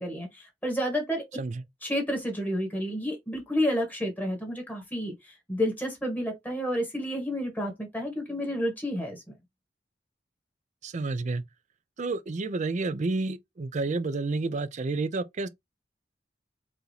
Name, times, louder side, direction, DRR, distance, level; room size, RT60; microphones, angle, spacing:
voice 1, 0.0-1.2 1.8-9.3, equal, 10° left, 1.7 m, -30 dB
voice 2, 10.8-11.4 12.0-15.5, right 3 dB, 45° right, 0.4 m, -30 dB
4.7 x 2.5 x 3.3 m
head